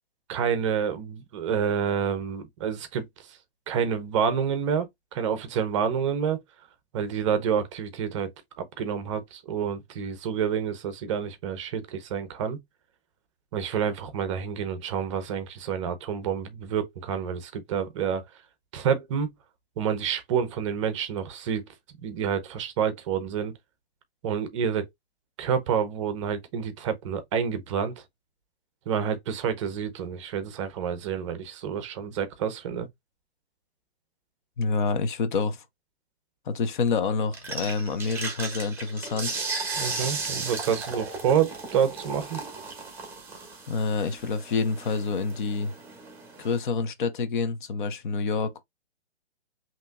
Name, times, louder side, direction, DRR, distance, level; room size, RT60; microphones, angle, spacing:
voice 1, 0.3-3.0 3.7-6.4 6.9-8.3 8.6-12.6 13.5-18.2 18.7-19.3 19.8-21.6 22.0-23.5 24.2-24.9 25.4-27.9 28.9-32.9 39.8-42.4, right 7 dB, 30° right, 0.7 m, -28 dB
voice 2, 34.6-35.6 36.5-39.4 43.7-45.7 46.4-48.6, left 4 dB, 50° left, 0.8 m, -27 dB
sound 1, 37.3-46.6, right 4 dB, 5° right, 1.2 m, -35 dB
5.3 x 2.9 x 2.2 m
hypercardioid pair, 150°, 33 cm